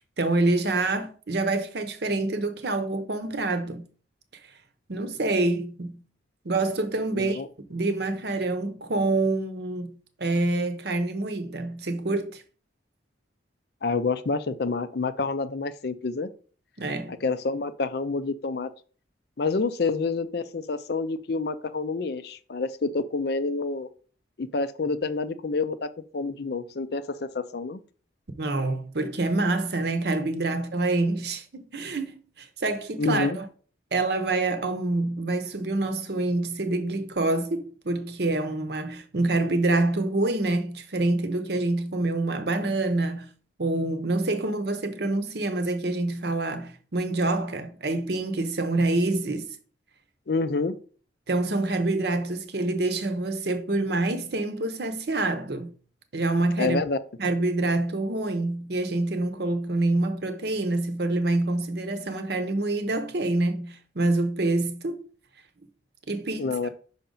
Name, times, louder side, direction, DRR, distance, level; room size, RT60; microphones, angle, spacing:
voice 1, 0.2-3.8 4.9-6.0 6.4-7.4 7.7-12.4 16.8-17.2 28.4-33.4 33.9-43.3 43.6-49.6 51.3-55.7 56.1-56.8 57.2-65.0 66.1-66.5, right 2 dB, 55° right, 0.8 m, -26 dB
voice 2, 7.1-7.5 13.8-16.3 17.2-18.7 19.4-23.9 24.4-25.9 26.1-27.8 33.0-33.4 50.3-50.8 56.6-57.0 66.4-66.7, left 3 dB, 55° left, 0.5 m, -28 dB
5.6 x 5.2 x 3.8 m
head